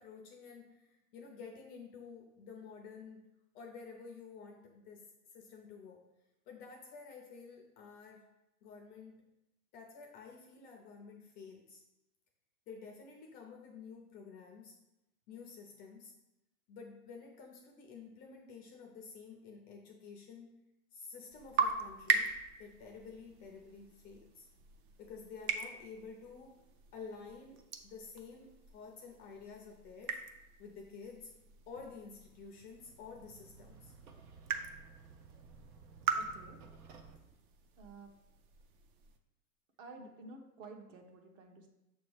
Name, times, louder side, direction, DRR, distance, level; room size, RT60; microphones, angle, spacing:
voice 1, 0.0-6.0 6.5-8.2 8.6-9.2 9.7-11.8 12.7-14.8 15.3-16.1 16.7-20.6 20.9-24.5 25.0-26.6 26.9-30.2 30.6-31.3 31.7-33.9, left 5 dB, 20° left, 1 dB, 0.4 m, -51 dB
sound 1, 21.3-39.2, right 5 dB, 40° right, 0.4 m, -41 dB
sound 2, 32.0-37.2, right 5 dB, 85° right, 1.0 m, -57 dB
voice 2, 36.1-36.6 37.8-38.1 39.8-41.7, right 3 dB, 60° right, 3 dB, 1.1 m, -52 dB
6.4 x 3.1 x 4.7 m, 0.94 s
supercardioid pair, 150°, 44 cm